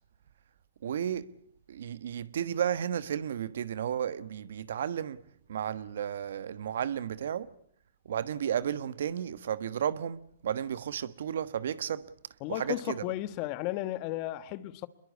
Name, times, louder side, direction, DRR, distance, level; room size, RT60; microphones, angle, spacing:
voice 1, 0.8-1.3 1.7-5.2 5.5-7.5 8.0-12.1 12.5-13.0, right 9 dB, 70° right, 1.4 m, -33 dB
voice 2, 12.4-14.9, left 15 dB, 40° left, 1.4 m, -34 dB
24.5 x 22.0 x 8.4 m
hypercardioid pair, 135°, 0 cm